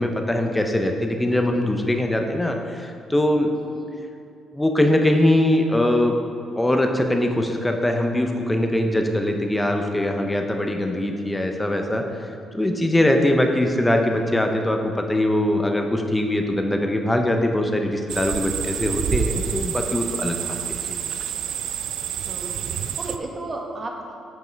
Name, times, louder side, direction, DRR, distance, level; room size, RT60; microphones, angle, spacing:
voice 1, 0.0-3.5 4.5-6.2 6.6-12.0 12.5-20.4 20.7-21.0, left 1 dB, 10° left, 3 dB, 0.8 m, -22 dB
voice 2, 3.5-4.0 20.4-20.6 22.3-24.2, right 2 dB, 35° right, 1 dB, 1.2 m, -35 dB
sound 1, 18.1-23.2, right 9 dB, 75° right, 0.3 m, -28 dB
7.8 x 5.4 x 4.6 m, 2.4 s
cardioid pair, 90°, 0 cm